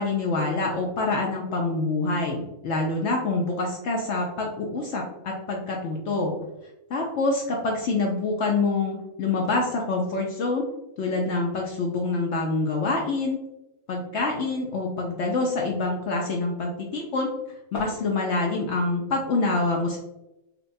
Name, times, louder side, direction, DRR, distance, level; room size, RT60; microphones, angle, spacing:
voice 1, 0.0-6.4 6.9-10.6 11.0-13.4 13.9-17.3 17.7-20.0, left 3 dB, 65° left, 0 dB, 0.7 m, -26 dB
4.1 x 2.1 x 2.6 m, 0.90 s
omnidirectional pair, 1.5 m